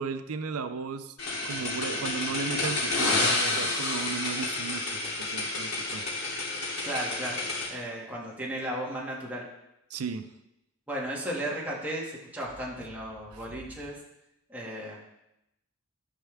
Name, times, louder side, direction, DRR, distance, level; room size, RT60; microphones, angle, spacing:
voice 1, 0.0-6.0 9.9-10.3 13.3-13.4, right 5 dB, 80° right, 10 dB, 0.5 m, -35 dB
sound 1, 1.2-7.7, left 2 dB, 85° left, 2.7 m, -30 dB
voice 2, 6.8-7.4 7.7-9.4 10.9-14.0 14.5-15.0, right 1 dB, 5° right, -5 dB, 2.0 m, -35 dB
13.0 x 5.6 x 3.5 m, 0.86 s
head